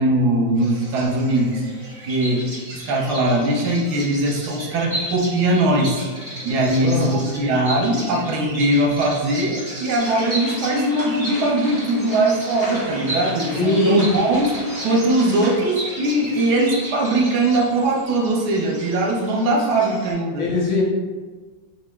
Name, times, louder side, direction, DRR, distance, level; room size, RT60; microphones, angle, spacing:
voice 1, 0.0-1.6 2.0-6.0 6.4-20.5, right 1 dB, 85° right, 1 dB, 1.3 m, -20 dB
Bird vocalization bird call bird song, 0.6-20.1, right 1 dB, 30° right, 0.7 m, -34 dB
voice 2, 6.8-7.1 13.5-14.1 20.4-20.8, left 1 dB, 60° left, -3 dB, 0.8 m, -20 dB
sound 1, 10.0-15.6, left 1 dB, 90° left, 1.8 m, -36 dB
5.7 x 2.9 x 2.3 m, 1.4 s
omnidirectional pair, 1.7 m